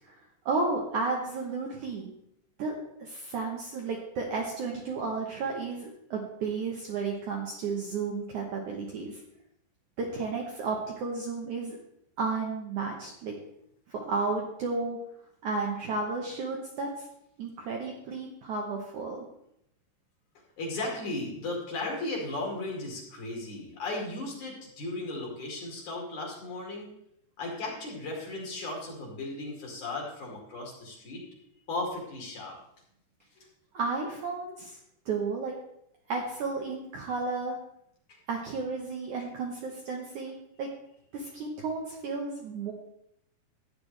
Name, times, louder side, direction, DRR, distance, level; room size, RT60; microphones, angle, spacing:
voice 1, 0.5-2.1 2.6-9.2 10.0-11.8 12.2-13.3 13.9-15.0 15.4-17.1 17.4-19.3 33.7-34.8 35.1-35.6 36.1-37.6 38.3-40.7 41.1-42.7, right 4 dB, 65° right, 0 dB, 2.0 m, -33 dB
voice 2, 20.6-26.9 27.4-31.2 31.7-32.6 33.4-33.5 38.1-38.2, left 2 dB, 50° left, -2 dB, 3.3 m, -36 dB
12.5 x 9.3 x 3.3 m, 0.76 s
omnidirectional pair, 4.7 m